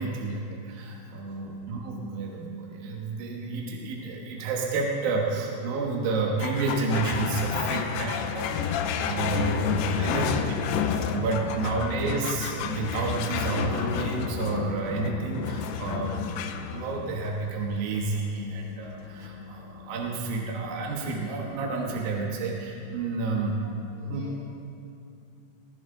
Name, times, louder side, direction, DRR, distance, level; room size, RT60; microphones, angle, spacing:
voice 1, 0.0-10.3 10.7-16.4 16.6-23.6 24.0-24.3, right 3 dB, 65° right, -1 dB, 3.0 m, -30 dB
voice 2, 1.1-1.6 9.8-10.3 11.4-11.9 23.9-24.5, right 1 dB, 80° right, -5 dB, 5.4 m, -50 dB
sound 1, 6.4-23.1, left 7 dB, 80° left, 2.7 m, -31 dB
22.0 x 15.0 x 3.9 m, 2.7 s
omnidirectional pair, 4.8 m